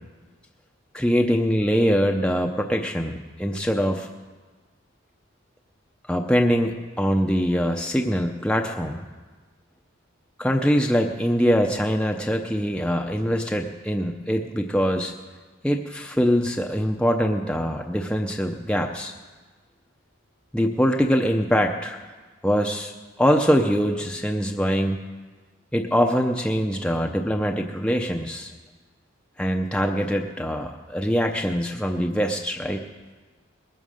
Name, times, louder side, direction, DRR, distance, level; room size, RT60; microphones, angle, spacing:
voice 1, 0.9-4.1 6.1-9.0 10.4-15.1 15.6-19.1 20.5-22.0 22.4-22.9 23.2-25.0 25.7-28.5 29.4-32.8, equal, 5° left, 2 dB, 0.6 m, -23 dB
20.5 x 9.1 x 6.5 m, 1.3 s
head